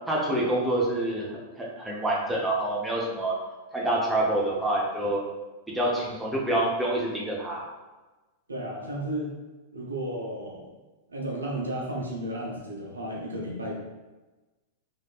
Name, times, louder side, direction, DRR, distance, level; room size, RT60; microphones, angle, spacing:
voice 1, 0.1-1.3 1.6-3.4 3.7-5.2 5.7-7.6, right 1 dB, 5° right, -4 dB, 0.7 m, -27 dB
voice 2, 8.5-9.3 9.7-10.7 11.1-13.8, right 1 dB, 80° right, -3 dB, 0.7 m, -33 dB
3.1 x 2.8 x 2.4 m, 1.2 s
figure-of-eight pair, 95°, 0 cm